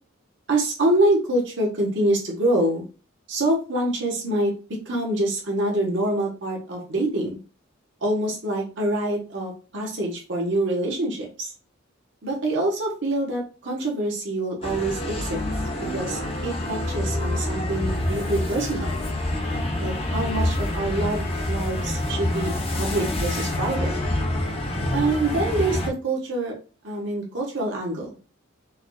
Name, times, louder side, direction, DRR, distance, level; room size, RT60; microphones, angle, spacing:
voice 1, 0.5-2.8 3.3-4.5 4.9-7.4 8.0-11.5 12.2-15.4 15.9-18.9 19.8-23.9 24.9-26.5 26.8-28.1, right 1 dB, 60° right, -2 dB, 1.1 m, -25 dB
sound 1, 14.6-25.9, left 1 dB, 30° left, 0.7 m, -27 dB
4.7 x 2.4 x 2.3 m, 0.35 s
head